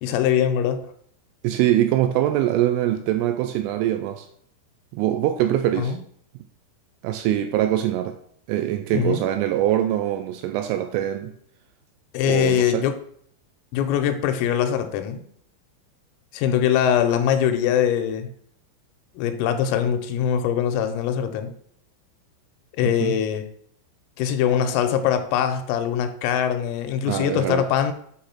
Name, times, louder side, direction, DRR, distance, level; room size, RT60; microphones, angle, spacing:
voice 1, 0.0-0.8 5.8-6.0 8.9-9.2 12.1-13.0 13.7-15.2 16.3-18.3 19.2-21.5 22.8-23.4 24.2-27.9, left 9 dB, 90° left, 3.3 m, -22 dB
voice 2, 1.4-4.3 4.9-6.0 7.0-8.2 8.5-11.3 12.2-12.8 22.8-23.2 27.1-27.7, right 12 dB, 85° right, 2.8 m, -23 dB
8.5 x 3.1 x 5.8 m
omnidirectional pair, 5.9 m